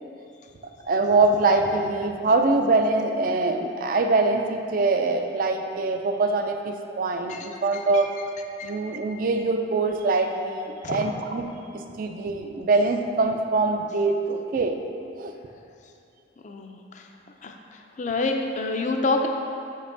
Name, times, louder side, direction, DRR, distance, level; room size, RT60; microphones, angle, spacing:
voice 1, 0.9-8.2 8.6-14.8 15.2-15.3, right 3 dB, 45° right, 5 dB, 0.3 m, -23 dB
voice 2, 16.4-17.1 17.4-17.6 18.0-19.3, left 3 dB, 40° left, 3 dB, 0.4 m, -27 dB
6.8 x 5.3 x 2.6 m, 2.6 s
head